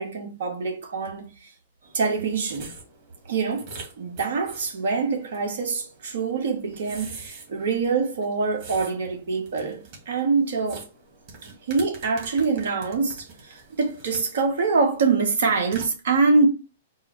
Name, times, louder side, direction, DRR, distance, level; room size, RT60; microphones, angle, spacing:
voice 1, 0.0-1.5 1.9-2.7 3.3-3.7 4.0-10.9 11.6-16.5, right 4 dB, 70° right, 1.2 m, -25 dB
sound 1, 1.8-15.9, right 4 dB, 50° right, 1.9 m, -45 dB
4.5 x 2.1 x 4.6 m
hypercardioid pair, 120°, 0 cm